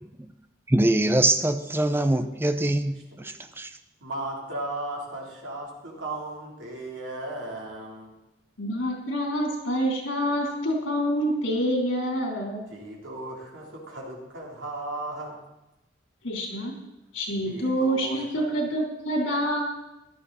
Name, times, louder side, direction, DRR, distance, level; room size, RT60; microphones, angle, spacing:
voice 1, 0.7-3.7, right 1 dB, 10° right, 9 dB, 0.6 m, -23 dB
voice 2, 4.0-8.1 12.7-15.4 17.4-18.5, right 2 dB, 80° right, -3 dB, 3.9 m, -36 dB
voice 3, 8.6-12.6 16.2-16.7 17.1-19.6, equal, 90° left, -1 dB, 4.0 m, -27 dB
15.0 x 12.0 x 4.2 m, 0.94 s
head